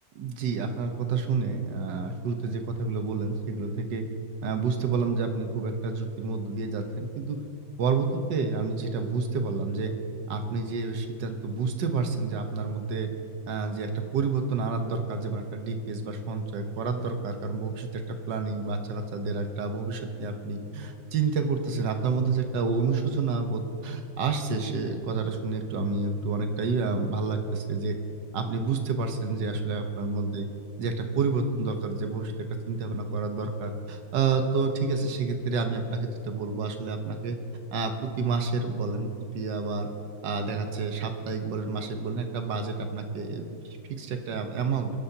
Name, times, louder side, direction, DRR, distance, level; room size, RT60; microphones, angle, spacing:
voice 1, 0.1-4.0 4.4-7.4 7.8-9.9 10.3-13.1 13.5-28.0 28.3-30.5 30.8-32.3 32.7-37.4 37.7-39.1 39.3-39.9 40.2-43.6 43.9-44.9, right 4 dB, 70° right, 6 dB, 1.7 m, -29 dB
23.5 x 10.5 x 2.9 m, 2.8 s
omnidirectional pair, 2.0 m